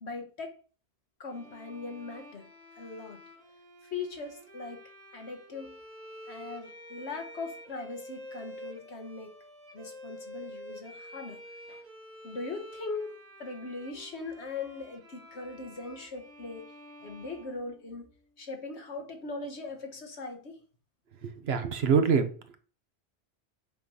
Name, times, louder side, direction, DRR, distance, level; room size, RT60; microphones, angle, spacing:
voice 1, 0.0-0.5 1.2-2.5 2.7-3.2 3.8-4.8 5.1-5.8 6.3-9.3 9.7-11.4 11.7-11.8 12.2-16.7 17.0-18.1 18.4-20.6, left 3 dB, 75° left, 1.6 m, -40 dB
Bowed string instrument, 1.3-18.3, equal, 85° right, 2.0 m, -49 dB
voice 2, 21.2-22.6, right 6 dB, 70° right, 1.2 m, -26 dB
7.6 x 3.2 x 5.4 m
omnidirectional pair, 1.1 m